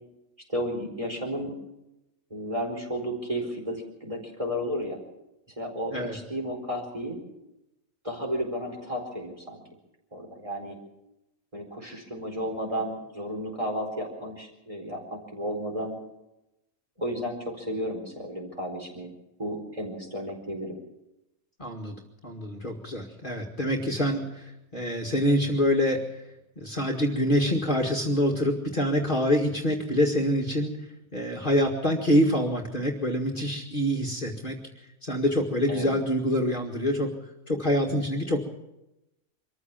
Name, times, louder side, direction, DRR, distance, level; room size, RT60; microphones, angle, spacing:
voice 1, 0.5-1.5 2.3-5.0 5.6-7.2 8.0-9.6 10.1-10.8 11.5-16.0 17.0-19.1 19.4-20.7 35.7-35.9, equal, 20° right, 1 dB, 4.5 m, -33 dB
voice 2, 21.6-22.0 22.2-26.2 26.6-34.6 35.0-37.2 37.5-38.4, equal, 35° left, 0 dB, 2.1 m, -26 dB
24.5 x 14.5 x 7.3 m, 0.92 s
omnidirectional pair, 1.5 m